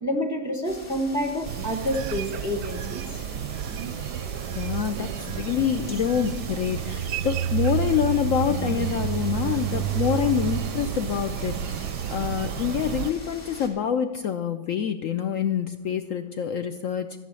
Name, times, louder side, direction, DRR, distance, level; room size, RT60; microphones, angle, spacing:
voice 1, 0.0-3.2, equal, 15° right, 4 dB, 0.8 m, -28 dB
sound 1, 0.6-13.7, left 1 dB, 45° left, 2.7 m, -42 dB
sound 2, 1.4-13.1, right 10 dB, 90° right, 1.2 m, -30 dB
voice 2, 4.6-17.2, left 9 dB, 70° left, 7 dB, 0.8 m, -26 dB
14.0 x 5.8 x 8.2 m, 1.2 s
omnidirectional pair, 1.7 m